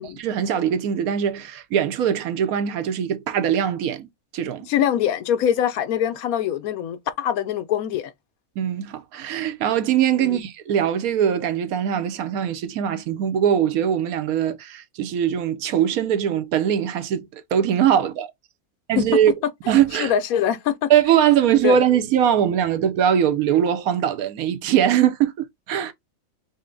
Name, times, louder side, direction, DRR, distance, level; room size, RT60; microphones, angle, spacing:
voice 1, 0.0-4.1 4.3-4.7 8.6-18.3 18.9-19.3 19.7-20.1 20.9-25.9, right 9 dB, 85° right, 1.1 m, -21 dB
voice 2, 4.7-8.1 10.2-10.4 20.0-20.9 21.6-21.8, left 9 dB, 80° left, 1.1 m, -23 dB
5.4 x 2.1 x 3.8 m
omnidirectional pair, 1.5 m